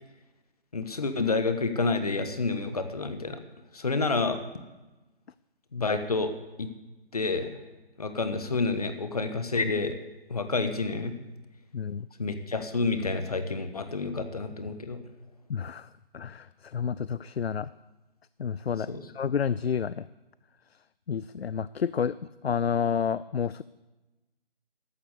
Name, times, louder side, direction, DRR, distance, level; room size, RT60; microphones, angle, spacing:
voice 1, 0.7-3.4 3.7-4.4 5.7-6.7 7.1-7.6 8.0-10.0 10.3-11.2 12.2-15.0 18.9-19.0, left 3 dB, 40° left, 9 dB, 1.4 m, -29 dB
voice 2, 11.7-12.1 15.5-15.9 16.1-17.7 18.4-18.9 19.1-20.1 21.1-23.6, left 7 dB, 85° left, 18 dB, 0.6 m, -30 dB
14.0 x 12.0 x 8.2 m, 1.1 s
figure-of-eight pair, 175°, 30 cm